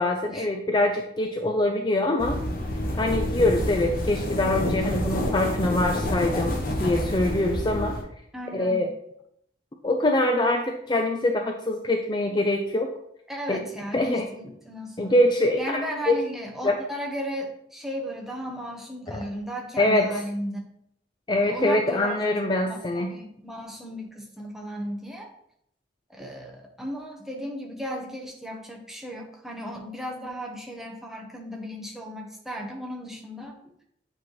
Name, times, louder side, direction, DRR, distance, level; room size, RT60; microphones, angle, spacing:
voice 1, 0.0-2.4 3.0-8.0 8.5-8.9 9.8-12.9 13.5-13.6 13.9-14.3 15.0-16.2 16.6-16.8 19.8-20.2 21.3-23.1, left 1 dB, 25° left, 3 dB, 0.5 m, -24 dB
sound 1, 2.2-8.0, left 1 dB, 50° left, 1.2 m, -28 dB
voice 2, 8.3-8.9 13.3-15.2 15.6-20.7 21.4-25.3 26.1-33.6, equal, ahead, -1 dB, 1.0 m, -35 dB
8.2 x 4.5 x 3.1 m, 0.74 s
head